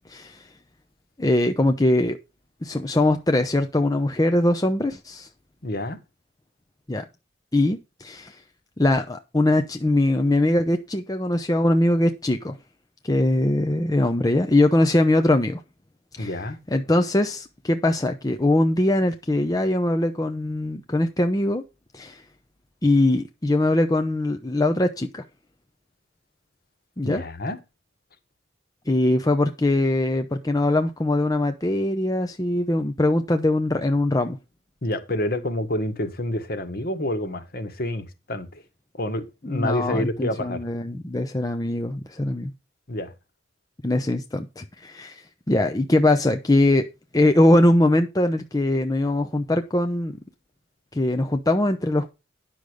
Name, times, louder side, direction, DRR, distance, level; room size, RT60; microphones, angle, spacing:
voice 1, 0.1-0.4 1.2-2.2 2.6-5.3 6.9-7.0 7.5-8.3 8.8-12.6 13.0-15.6 16.1-16.3 16.7-21.6 21.9-22.2 22.8-25.2 27.0-27.2 28.9-34.4 39.5-42.5 43.8-46.9 47.1-50.2 50.9-52.1, left 1 dB, 20° left, 0.7 m, -22 dB
voice 2, 5.6-6.0 16.2-16.6 27.0-27.6 34.8-38.6 38.9-40.6 42.9-43.1, left 1 dB, 50° left, 1.7 m, -28 dB
10.0 x 6.4 x 5.1 m
head